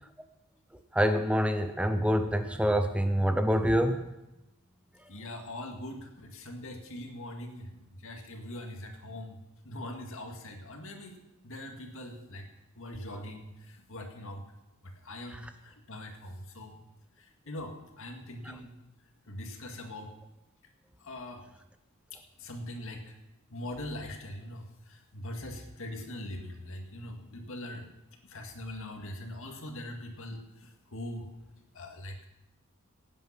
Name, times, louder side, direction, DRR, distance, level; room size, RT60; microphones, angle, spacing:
voice 1, 0.9-4.0, equal, 5° right, 8 dB, 0.6 m, -26 dB
voice 2, 5.1-9.4 9.6-11.2 11.4-12.5 12.8-14.4 14.8-16.8 17.2-18.8 19.3-20.1 21.0-21.4 22.4-23.1 23.5-27.9 28.2-31.3 31.7-32.3, left 1 dB, 65° left, 4 dB, 2.1 m, -42 dB
17.5 x 9.3 x 5.8 m, 0.94 s
head